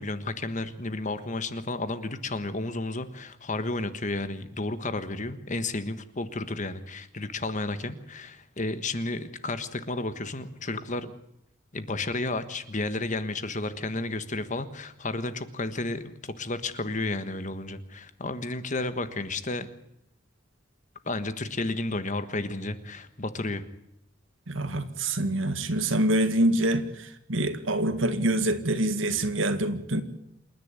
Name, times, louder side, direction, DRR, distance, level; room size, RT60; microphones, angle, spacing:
voice 1, 0.0-11.1 11.7-19.7 21.0-23.6, left 2 dB, 40° left, 11 dB, 1.5 m, -32 dB
voice 2, 24.5-30.0, right 1 dB, 85° right, 9 dB, 2.0 m, -26 dB
27.5 x 10.5 x 9.8 m, 0.81 s
head